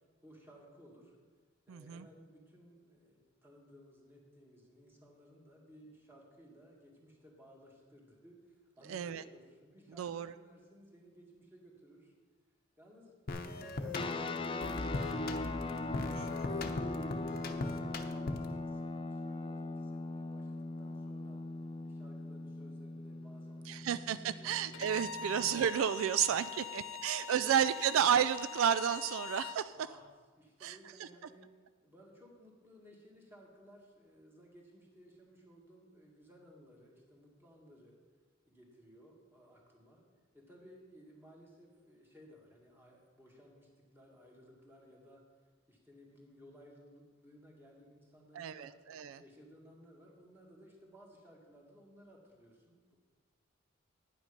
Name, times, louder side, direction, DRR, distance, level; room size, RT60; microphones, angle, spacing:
voice 1, 0.2-1.2 1.7-12.1 12.8-13.1 13.4-17.0 17.5-21.5 21.8-25.4 26.5-27.6 29.7-30.1 30.4-31.5 31.8-38.0 38.5-40.0 40.3-45.3 45.7-48.8 49.2-53.0, equal, 10° right, -2 dB, 2.0 m, -59 dB
voice 2, 1.7-2.1 8.9-9.2 10.0-10.3 16.1-16.3 23.7-29.7 30.6-30.8 48.3-49.2, right 8 dB, 80° right, 14 dB, 0.3 m, -32 dB
sound 1, 13.3-18.6, left 2 dB, 45° left, 0.8 m, -39 dB
sound 2, 13.9-25.7, left 2 dB, 25° left, 0.5 m, -41 dB
Bowed string instrument, 24.7-29.6, left 7 dB, 85° left, 1.0 m, -44 dB
9.7 x 9.2 x 5.2 m, 1.4 s
head